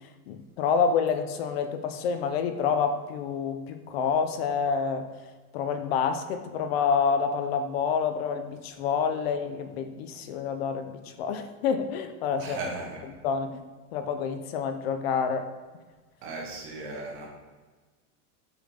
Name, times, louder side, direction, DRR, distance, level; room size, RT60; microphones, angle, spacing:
voice 1, 0.3-5.1 5.5-12.6 13.2-13.6 13.9-15.4, left 6 dB, 45° left, 8 dB, 0.5 m, -28 dB
voice 2, 12.4-13.1 16.2-17.3, right 3 dB, 30° right, -2 dB, 1.4 m, -37 dB
8.2 x 4.0 x 3.3 m, 1.4 s
supercardioid pair, 160°, 44 cm